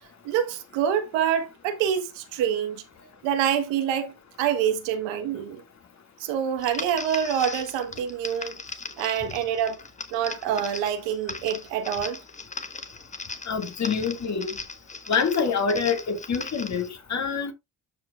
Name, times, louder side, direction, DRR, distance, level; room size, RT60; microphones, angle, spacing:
voice 1, 0.2-2.8 3.2-5.6 6.2-8.6 9.0-9.8 10.1-12.2, right 9 dB, 90° right, 1.6 m, -26 dB
sound 1, 6.6-16.9, left 4 dB, 15° left, 1.1 m, -38 dB
voice 2, 13.5-14.6 15.1-17.5, left 5 dB, 40° left, 2.4 m, -26 dB
12.5 x 5.0 x 2.5 m
cardioid pair, 110°, 43 cm